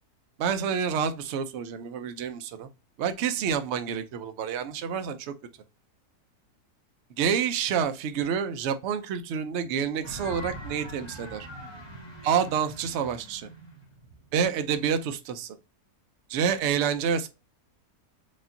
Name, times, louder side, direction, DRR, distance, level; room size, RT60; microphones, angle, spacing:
voice 1, 0.4-2.7 3.0-5.3 7.2-11.5 12.2-13.5 14.3-15.6 16.3-17.3, right 7 dB, 60° right, 0.7 m, -28 dB
sound 1, 10.0-14.9, equal, 20° left, 1.2 m, -43 dB
5.0 x 2.7 x 2.6 m
omnidirectional pair, 1.6 m